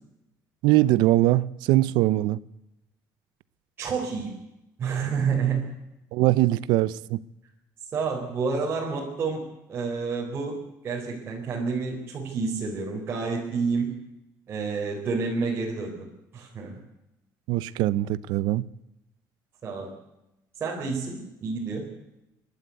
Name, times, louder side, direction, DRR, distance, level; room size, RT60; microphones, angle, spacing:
voice 1, 0.6-2.4 6.1-7.2 17.5-18.7, right 16 dB, 90° right, 0.7 m, -22 dB
voice 2, 3.8-4.3 4.8-5.7 7.9-13.9 14.5-16.1 16.3-16.8 19.6-19.9 20.6-21.9, right 5 dB, 30° right, 4.1 m, -29 dB
28.5 x 12.0 x 9.4 m
cardioid pair, 175°, 7 cm